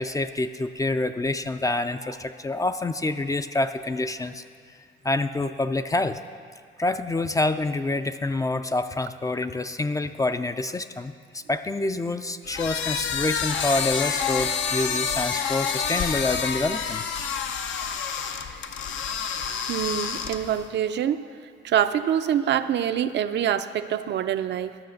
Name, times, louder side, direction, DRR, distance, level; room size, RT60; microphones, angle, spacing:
voice 1, 0.0-4.4 5.0-6.2 6.8-17.0 19.5-19.7, left 2 dB, 15° left, 10 dB, 0.4 m, -27 dB
sound 1, 12.4-20.6, left 6 dB, 70° left, 0.7 m, -28 dB
voice 2, 19.7-21.3 21.6-24.8, right 10 dB, 60° right, 10 dB, 0.5 m, -25 dB
11.5 x 6.7 x 6.4 m, 2.1 s
cardioid pair, 90°, 20 cm